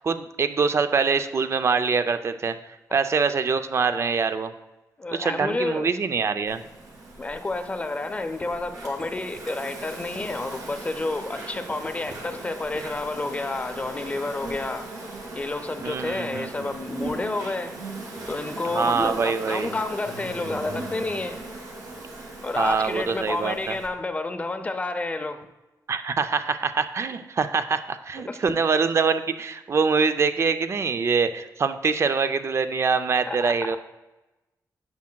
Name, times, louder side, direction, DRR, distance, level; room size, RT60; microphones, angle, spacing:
voice 1, 0.0-2.6 2.9-4.5 5.1-6.6 15.8-16.7 18.6-19.8 22.6-23.8 25.9-33.8, right 5 dB, 40° right, 10 dB, 0.4 m, -24 dB
voice 2, 5.0-5.9 7.2-14.9 15.3-17.7 18.3-21.4 22.4-25.4 28.3-28.4 33.3-33.8, left 2 dB, 20° left, 8 dB, 0.5 m, -30 dB
Insect, 6.5-23.9, right 2 dB, 60° right, 2.0 m, -38 dB
9.4 x 7.3 x 2.3 m, 1.1 s
wide cardioid pair, 170°, 7 cm